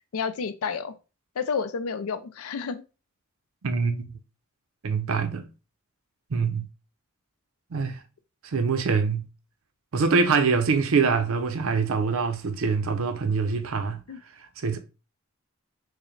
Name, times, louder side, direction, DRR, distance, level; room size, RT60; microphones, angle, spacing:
voice 1, 0.1-0.9 1.4-2.8 14.1-14.2, left 5 dB, 75° left, 0.4 m, -30 dB
voice 2, 3.6-4.1 4.8-5.5 6.3-6.7 7.7-8.0 8.4-9.3 9.9-14.0 14.6-14.8, right 5 dB, 70° right, 0.5 m, -24 dB
4.7 x 2.1 x 3.1 m
head